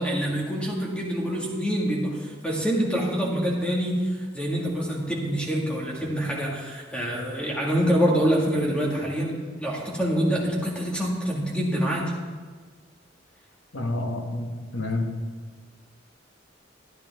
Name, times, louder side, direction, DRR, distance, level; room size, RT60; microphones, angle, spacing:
voice 1, 0.0-12.1, equal, 5° left, -3 dB, 1.8 m, -26 dB
voice 2, 13.7-15.1, left 2 dB, 90° left, 3 dB, 1.3 m, -29 dB
12.5 x 10.0 x 3.5 m, 1.5 s
head